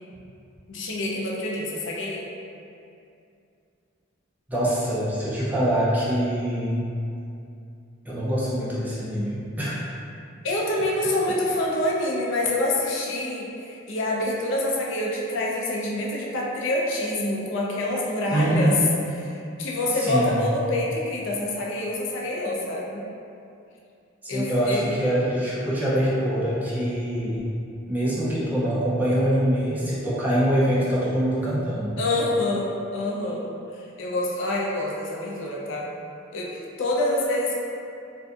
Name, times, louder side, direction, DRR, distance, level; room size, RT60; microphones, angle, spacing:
voice 1, 0.7-2.3 10.4-18.8 19.2-23.0 24.3-24.9 32.0-33.4 33.7-35.9 36.3-37.6, left 1 dB, 65° left, -3 dB, 0.4 m, -26 dB
voice 2, 4.5-6.9 8.0-9.9 18.3-18.8 19.9-20.4 24.2-27.5 27.9-32.0, equal, 10° right, -9 dB, 0.4 m, -24 dB
2.5 x 2.4 x 2.3 m, 2.6 s
head